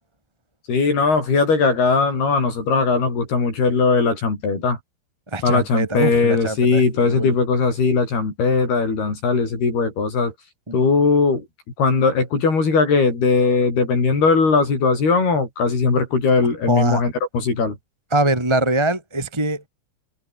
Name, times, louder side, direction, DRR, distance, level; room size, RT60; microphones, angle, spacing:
voice 1, 0.7-4.8 5.4-10.3 10.7-11.5 11.8-17.8, left 4 dB, 75° left, 9.2 m, -19 dB
voice 2, 5.3-7.3 10.7-10.9 16.7-17.0 18.1-19.6, right 2 dB, 10° right, 1.6 m, -23 dB
omnidirectional pair, 4.6 m